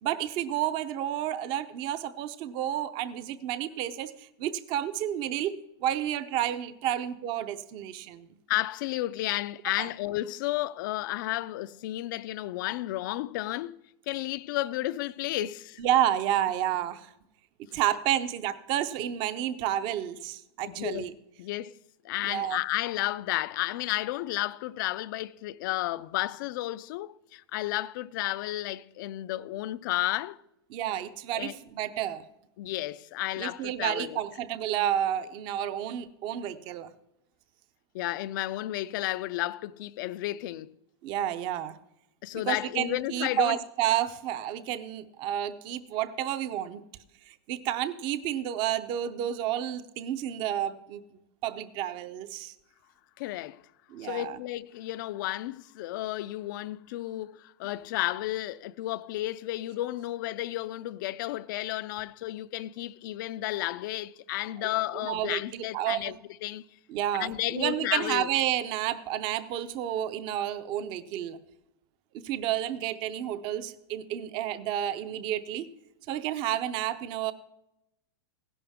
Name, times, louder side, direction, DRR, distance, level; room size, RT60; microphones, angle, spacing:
voice 1, 0.0-8.3 9.8-9.9 15.8-17.1 17.7-21.1 22.2-22.6 30.7-32.3 33.4-36.9 41.0-41.8 42.3-46.8 47.3-51.0 51.4-52.5 53.9-54.4 64.6-64.7 65.0-66.2 66.9-71.4 72.2-75.7 76.1-77.3, right 11 dB, 35° right, 0.7 m, -30 dB
voice 2, 8.5-15.8 20.7-21.1 21.4-21.8 22.0-30.4 31.3-31.6 32.6-34.2 37.9-40.8 42.2-43.6 53.2-53.6 54.0-66.1 66.4-66.6 67.2-68.3, left 16 dB, 50° left, 0.4 m, -32 dB
16.5 x 11.0 x 3.6 m
hypercardioid pair, 145°, 14 cm